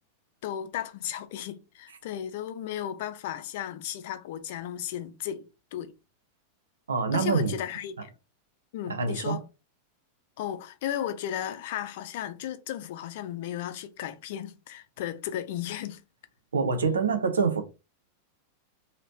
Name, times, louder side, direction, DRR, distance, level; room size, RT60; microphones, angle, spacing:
voice 1, 0.4-5.4 5.7-5.9 7.1-8.1 8.7-9.4 10.4-16.0, left 11 dB, 50° left, 0.5 m, -35 dB
voice 2, 6.9-7.6 8.9-9.4 16.5-17.6, right 5 dB, 70° right, 0.6 m, -25 dB
3.1 x 2.8 x 3.9 m
figure-of-eight pair, 90°, 0 cm